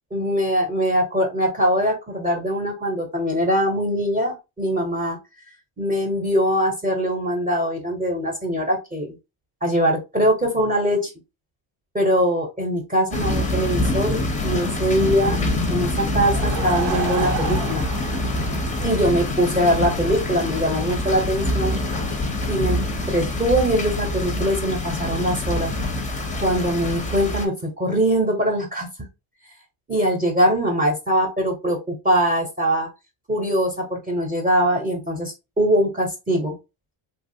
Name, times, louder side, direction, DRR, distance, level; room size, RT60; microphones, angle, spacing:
voice 1, 0.1-5.2 5.8-9.1 9.6-11.1 11.9-15.4 15.7-17.8 18.8-21.7 22.5-22.8 23.1-25.7 26.4-28.9 29.9-32.9 33.3-36.5, equal, 15° right, 2 dB, 0.8 m, -22 dB
sound 1, 13.1-27.5, left 2 dB, 15° left, 0.6 m, -25 dB
Laughter / Crowd, 16.1-19.6, right 6 dB, 90° right, 0.9 m, -31 dB
2.9 x 2.3 x 2.7 m, 0.26 s
cardioid pair, 105°, 49 cm